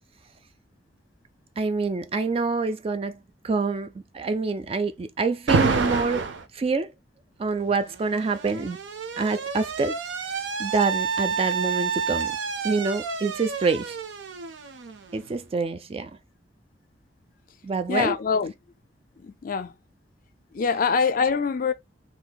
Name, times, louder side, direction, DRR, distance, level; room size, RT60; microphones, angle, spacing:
voice 1, 1.6-3.2 3.4-6.9 7.4-8.8 9.2-10.0 10.6-12.4 12.6-14.0 15.1-16.1 17.6-18.2, right 4 dB, 30° right, 0.3 m, -26 dB
Alarm, 5.5-6.4 7.7-15.4, right 4 dB, 75° right, 0.6 m, -29 dB
voice 2, 17.9-18.5 19.2-19.7 20.5-21.7, left 5 dB, 50° left, 0.4 m, -24 dB
2.7 x 2.4 x 3.8 m
head